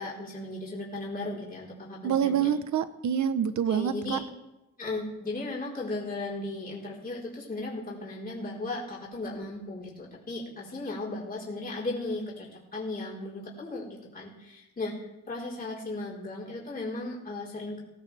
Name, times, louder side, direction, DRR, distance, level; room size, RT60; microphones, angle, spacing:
voice 1, 0.0-2.5 3.7-4.2 4.8-15.0 15.3-17.8, left 2 dB, 30° left, -6 dB, 4.7 m, -36 dB
voice 2, 2.0-4.2, right 8 dB, 70° right, 11 dB, 1.1 m, -26 dB
19.5 x 18.0 x 3.6 m, 0.96 s
cardioid pair, 135°, 31 cm